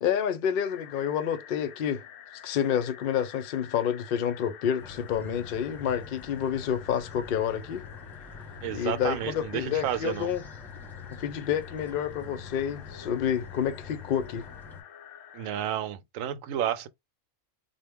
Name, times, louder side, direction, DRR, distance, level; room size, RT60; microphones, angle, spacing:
voice 1, 0.0-2.0 2.4-7.8 8.7-10.4 11.2-14.5, left 9 dB, 60° left, 0.5 m, -29 dB
sound 1, 0.6-15.6, left 9 dB, 75° left, 0.9 m, -49 dB
sound 2, 4.8-14.8, left 5 dB, ahead, 1.2 m, -45 dB
voice 2, 8.6-10.3 15.3-16.9, right 11 dB, 85° right, 1.0 m, -31 dB
3.8 x 2.2 x 3.4 m
omnidirectional pair, 1.4 m